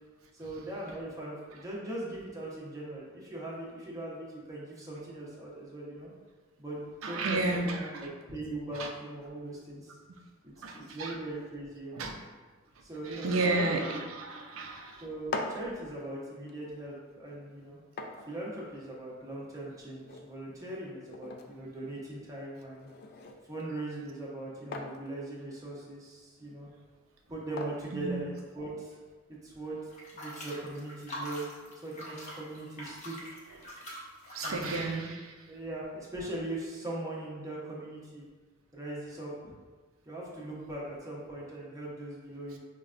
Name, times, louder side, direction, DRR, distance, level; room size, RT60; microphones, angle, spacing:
voice 1, 0.3-6.1 6.6-9.9 10.4-12.1 12.8-14.0 15.0-17.8 18.3-22.9 23.5-26.7 27.3-28.9 29.4-29.8 30.1-31.5 31.8-33.3 34.4-34.9 35.5-38.2 38.7-39.5 40.0-42.6, right 1 dB, 15° right, -5 dB, 0.8 m, -40 dB
voice 2, 7.0-7.9 8.7-8.9 10.1-10.2 10.6-11.1 11.9-12.1 13.1-15.0 27.9-28.3 34.3-35.3, right 2 dB, 85° right, 3 dB, 0.5 m, -32 dB
sound 1, 15.0-28.9, left 3 dB, 50° left, 0.3 m, -45 dB
sound 2, 29.9-34.9, equal, 35° left, 0.7 m, -43 dB
5.2 x 2.2 x 2.4 m, 1.4 s
head